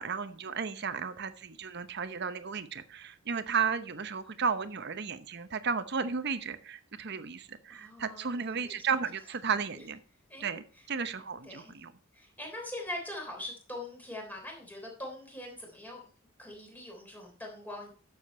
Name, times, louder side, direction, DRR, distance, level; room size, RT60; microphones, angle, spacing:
voice 1, 0.0-10.0 10.4-11.9, right 6 dB, 50° right, 12 dB, 0.8 m, -34 dB
voice 2, 7.7-8.8 9.8-9.9 10.3-10.5 10.7-10.9 11.4-11.8 12.1-16.0 16.4-17.9, left 1 dB, 10° left, 0 dB, 3.5 m, -42 dB
11.5 x 7.3 x 4.3 m, 0.39 s
head